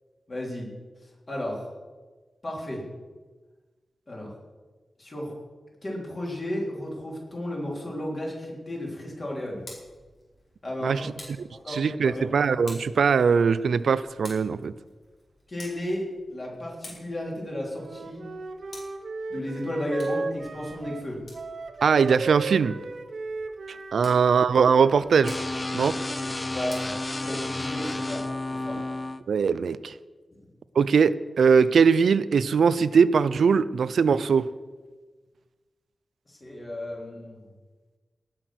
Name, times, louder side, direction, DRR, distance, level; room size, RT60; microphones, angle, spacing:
voice 1, 0.3-0.7 1.0-1.6 2.4-2.8 4.1-4.3 5.0-5.3 5.8-9.6 10.6-11.1 11.5-12.3 15.5-18.2 19.3-21.2 25.9-26.8 27.2-28.2 28.5-28.8 30.3-30.4 36.3-37.4, left 1 dB, 35° left, -3 dB, 3.5 m, -34 dB
Tick, 9.3-27.8, left 2 dB, 55° left, 4.3 m, -51 dB
voice 2, 11.7-14.7 21.8-22.7 23.9-25.3 25.7-26.0 29.3-29.9 30.8-34.5, right 6 dB, 90° right, 15 dB, 0.4 m, -21 dB
Wind instrument woodwind instrument, 17.7-25.2, right 3 dB, 55° right, 0.7 m, -36 dB
sound 1, 25.2-29.2, left 2 dB, 20° left, 0.4 m, -31 dB
18.0 x 6.0 x 6.2 m, 1.3 s
wide cardioid pair, 140°, 0 cm